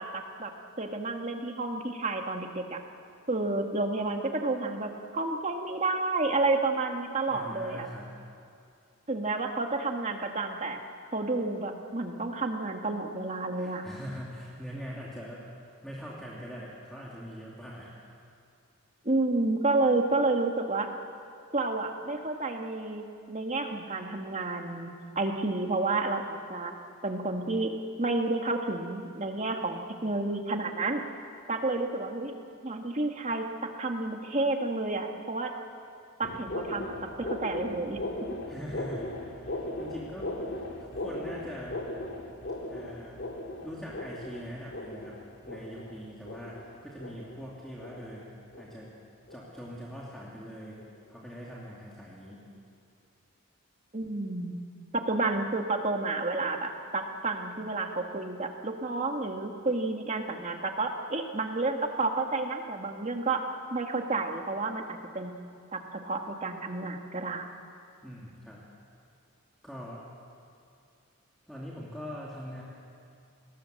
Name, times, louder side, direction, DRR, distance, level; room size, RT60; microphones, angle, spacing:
voice 1, 0.0-2.8 3.3-7.9 9.1-10.8 11.1-13.8 19.1-20.9 21.5-26.7 27.0-27.7 28.0-32.3 32.6-33.4 33.8-35.5 36.2-36.9 37.2-38.0 53.9-54.6 54.9-63.4 63.7-65.3 65.7-67.4, right 2 dB, 35° right, 4 dB, 1.8 m, -30 dB
voice 2, 7.2-8.1 13.5-15.4 15.8-18.2 38.5-41.8 42.7-43.2 43.6-48.3 48.6-48.9 49.3-50.8 51.1-52.4 68.0-68.6 69.6-70.0 71.5-72.6, equal, ahead, -6 dB, 2.7 m, -42 dB
sound 1, 36.2-49.0 49.3-49.6 50.0-50.3 50.8-51.0 51.5-51.6 52.3-52.4, left 1 dB, 55° left, 2.8 m, -38 dB
29.5 x 20.0 x 7.8 m, 2.4 s
head